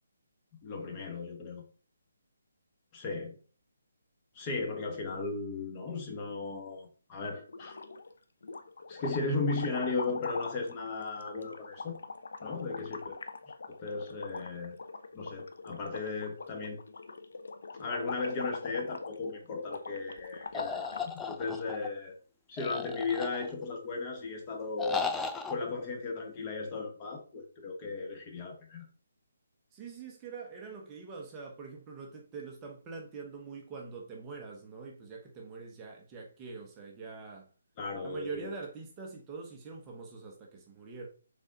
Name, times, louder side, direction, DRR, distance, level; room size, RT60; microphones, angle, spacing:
voice 1, 0.6-1.6 2.9-3.4 4.3-7.8 8.9-12.0 12.4-13.2 13.8-14.8 15.1-16.8 17.8-22.2 22.5-25.0 25.5-28.9 37.8-38.5, left 3 dB, 20° left, 1.2 m, -36 dB
sound 1, 7.5-8.1 8.4-21.2, left 4 dB, 70° left, 0.8 m, -43 dB
sound 2, 20.5-21.9 22.6-23.7 24.8-25.5, left 5 dB, 5° left, 0.3 m, -35 dB
voice 2, 29.7-37.5 38.0-41.1, right 4 dB, 15° right, 0.9 m, -44 dB
6.2 x 4.1 x 3.9 m
hypercardioid pair, 165°, 0 cm